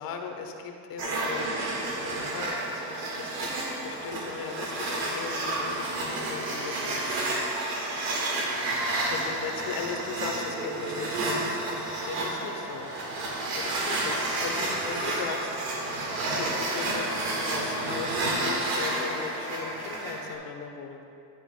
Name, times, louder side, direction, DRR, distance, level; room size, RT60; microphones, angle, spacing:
voice 1, 0.0-1.5 1.9-7.0 9.1-11.4 12.0-12.9 13.5-15.8 16.3-21.0, left 6 dB, 45° left, 3 dB, 1.2 m, -38 dB
sound 1, 1.0-20.3, right 2 dB, 45° right, 1.9 m, -30 dB
12.0 x 9.9 x 2.3 m, 2.6 s
supercardioid pair, 125°, 49 cm